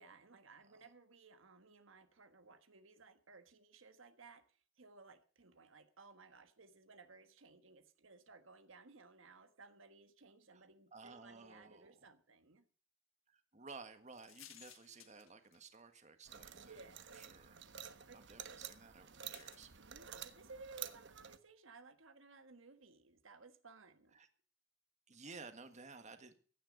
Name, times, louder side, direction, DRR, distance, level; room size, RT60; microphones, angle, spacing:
voice 1, 0.0-12.6 16.5-17.3 18.1-18.2 19.8-24.2, right 4 dB, 75° right, 10 dB, 1.4 m, -59 dB
voice 2, 10.9-12.0 13.3-17.6 18.1-19.7 24.1-24.3 25.1-26.3, right 4 dB, 35° right, 9 dB, 1.6 m, -55 dB
sound 1, 14.1-16.0 16.9-17.0 19.3-19.6, left 11 dB, 90° left, 1.6 m, -58 dB
sound 2, 16.3-21.4, right 9 dB, 60° right, 1.2 m, -51 dB
16.0 x 11.0 x 5.2 m, 0.42 s
head